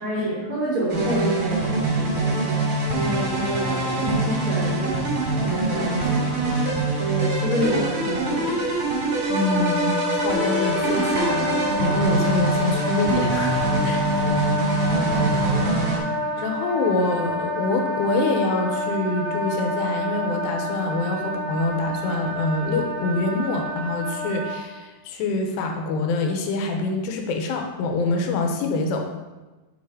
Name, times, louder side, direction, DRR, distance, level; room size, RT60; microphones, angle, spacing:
voice 1, 0.0-8.6, right 1 dB, 85° right, -7 dB, 1.1 m, -28 dB
sound 1, 0.9-16.0, right 2 dB, 40° right, 2.4 m, -24 dB
voice 2, 9.3-14.2 15.1-15.4 16.4-29.1, left 3 dB, 80° left, 3 dB, 2.8 m, -25 dB
Wind instrument woodwind instrument, 9.3-24.6, left 1 dB, 60° left, 1.4 m, -28 dB
7.2 x 4.7 x 4.8 m, 1.2 s
omnidirectional pair, 5.2 m